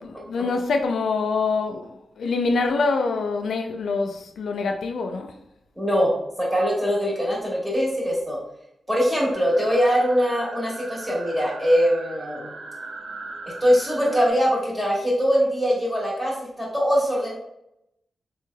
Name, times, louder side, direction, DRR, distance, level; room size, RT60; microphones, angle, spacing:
voice 1, 0.0-5.4, left 4 dB, 85° left, 0.3 m, -25 dB
voice 2, 5.8-6.1 6.4-8.4 8.9-12.5 13.6-17.3, equal, 10° right, 1.5 m, -22 dB
sound 1, 9.3-14.3, right 3 dB, 65° right, 0.6 m, -39 dB
4.3 x 3.1 x 2.2 m
cardioid pair, 85°, 0 cm